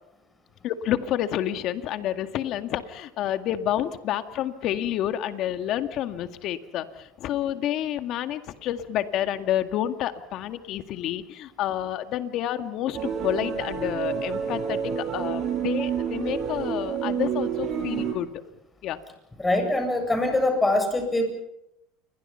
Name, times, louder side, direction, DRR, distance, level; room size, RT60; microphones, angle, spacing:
voice 1, 0.6-18.3 18.8-19.0, left 11 dB, 55° left, 8 dB, 2.0 m, -29 dB
sound 1, 12.9-18.1, right 7 dB, 45° right, 7.9 m, -29 dB
voice 2, 19.4-21.3, left 2 dB, 15° left, 6 dB, 7.9 m, -23 dB
29.0 x 23.0 x 5.8 m, 0.84 s
supercardioid pair, 95°, 0 cm